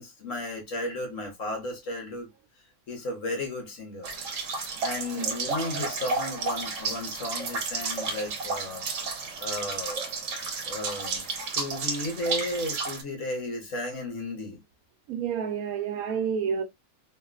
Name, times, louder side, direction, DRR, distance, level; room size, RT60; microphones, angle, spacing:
voice 1, 0.0-2.3 2.9-4.1 4.8-8.8 9.4-10.0 10.7-14.6, left 1 dB, 65° left, 1.4 m, -34 dB
sound 1, 4.0-13.0, right 4 dB, 60° right, 1.1 m, -32 dB
voice 2, 15.1-16.6, right 7 dB, 85° right, 1.1 m, -29 dB
3.4 x 2.5 x 2.3 m
omnidirectional pair, 1.5 m